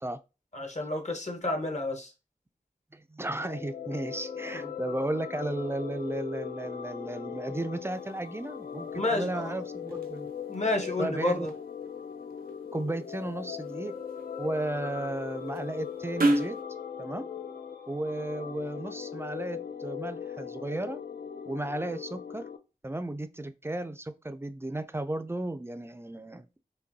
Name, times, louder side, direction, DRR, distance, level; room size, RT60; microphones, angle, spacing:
voice 1, 0.5-2.1 4.5-4.7 8.9-9.4 10.5-11.5, left 2 dB, 50° left, 1.0 m, -30 dB
voice 2, 2.9-10.3 11.0-11.5 12.7-13.9 14.4-16.6 17.0-17.3 17.9-21.0 21.5-22.4 22.8-26.6, right 1 dB, 15° right, 0.3 m, -34 dB
sound 1, 3.3-22.6, left 7 dB, 70° left, 0.5 m, -39 dB
sound 2, 7.9-16.6, right 1 dB, 75° right, 0.6 m, -36 dB
5.1 x 2.2 x 2.7 m
wide cardioid pair, 60°, 16 cm